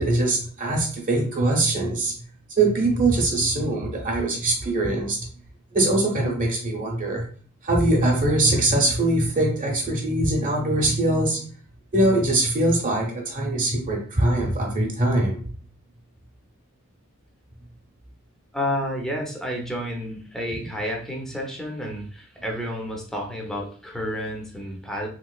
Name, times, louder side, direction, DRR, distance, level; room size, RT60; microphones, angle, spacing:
voice 1, 0.0-2.1 2.6-5.2 5.7-7.2 7.6-11.4 11.9-15.4, right 2 dB, 40° right, -1 dB, 0.9 m, -22 dB
voice 2, 18.5-25.1, equal, ahead, 0 dB, 0.6 m, -30 dB
3.5 x 3.0 x 2.3 m, 0.42 s
head